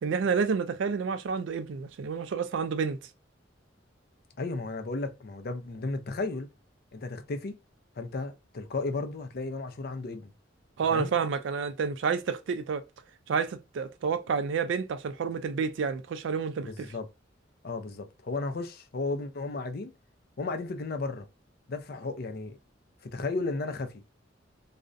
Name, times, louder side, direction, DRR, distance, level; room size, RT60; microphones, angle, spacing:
voice 1, 0.0-3.0 10.8-12.8 13.3-16.9, right 5 dB, 75° right, 0.3 m, -29 dB
voice 2, 4.4-6.5 6.9-7.6 8.0-10.3 10.9-11.1 16.6-17.1 17.6-19.9 20.4-21.3 21.7-22.6 23.0-24.0, left 3 dB, 55° left, 0.5 m, -34 dB
2.4 x 2.1 x 2.5 m
head